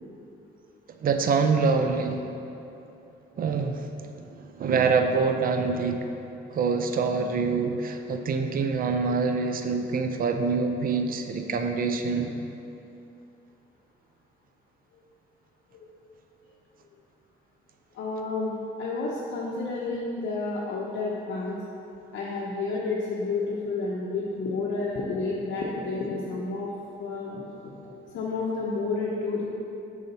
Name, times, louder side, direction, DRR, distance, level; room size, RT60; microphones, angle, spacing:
voice 1, 1.0-2.3 3.4-3.9 4.2-6.1 6.5-12.4, right 4 dB, 45° right, 6 dB, 0.5 m, -25 dB
voice 2, 17.9-21.6 22.1-26.7 27.0-29.5, left 3 dB, 65° left, -4 dB, 0.7 m, -30 dB
4.9 x 3.8 x 5.5 m, 2.8 s
cardioid pair, 90°, 20 cm